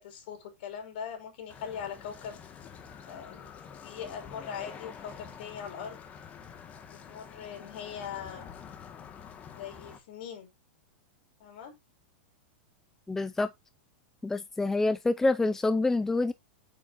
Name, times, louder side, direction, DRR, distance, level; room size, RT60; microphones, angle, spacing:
voice 1, 0.0-2.4 3.1-3.5 3.8-6.0 6.9-8.5 9.5-10.5 11.4-11.8, left 7 dB, 60° left, 5.1 m, -41 dB
sound 1, 1.5-10.0, left 7 dB, 25° left, 1.7 m, -47 dB
voice 2, 13.1-13.5 14.2-16.3, left 2 dB, 5° left, 0.5 m, -27 dB
9.5 x 7.7 x 2.7 m
supercardioid pair, 150°, 6 cm